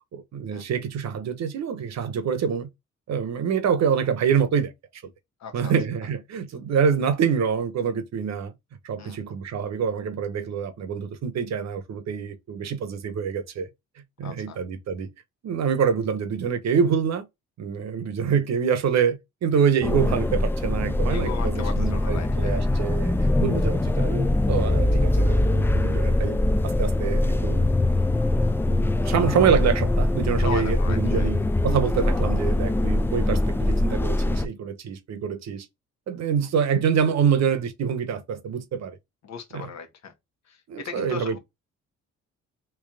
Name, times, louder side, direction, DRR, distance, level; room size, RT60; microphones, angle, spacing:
voice 1, 0.1-2.7 3.1-4.7 5.5-8.5 8.8-13.7 14.2-15.1 15.4-17.3 17.6-26.4 26.6-27.7 28.7-35.7 36.1-39.0 39.5-39.7 40.7-41.4, right 7 dB, 60° right, 1.0 m, -26 dB
voice 2, 5.4-5.7 9.0-9.2 14.2-14.6 21.1-22.8 29.0-29.1 30.4-31.3 39.2-40.1 40.4-41.4, left 7 dB, 65° left, 1.2 m, -38 dB
sound 1, 19.8-34.5, left 1 dB, 10° left, 0.3 m, -22 dB
3.4 x 3.0 x 3.6 m
cardioid pair, 90°, 30 cm